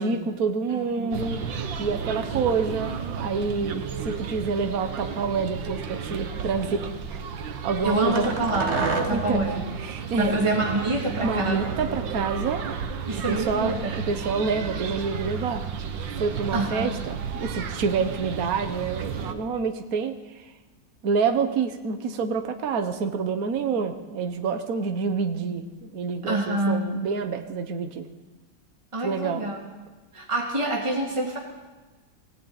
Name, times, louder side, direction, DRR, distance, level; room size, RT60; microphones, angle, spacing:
voice 1, 0.0-1.4 1.8-2.9 3.2-8.3 9.1-9.4 9.8-10.3 11.2-12.6 13.3-15.6 16.2-20.4 21.0-28.1 29.0-29.4, right 5 dB, 55° right, 7 dB, 1.6 m, -27 dB
sound 1, 1.1-19.3, right 6 dB, 80° right, 1.9 m, -33 dB
sound 2, 6.6-6.8 8.1-9.4 11.3-12.5, right 3 dB, 35° right, 1.8 m, -30 dB
voice 2, 7.8-9.6 10.2-11.7 13.1-14.0 16.5-16.9 26.2-26.9 28.9-29.6 30.1-31.4, right 2 dB, 15° right, -2 dB, 2.7 m, -26 dB
19.0 x 16.5 x 9.1 m, 1.2 s
omnidirectional pair, 2.0 m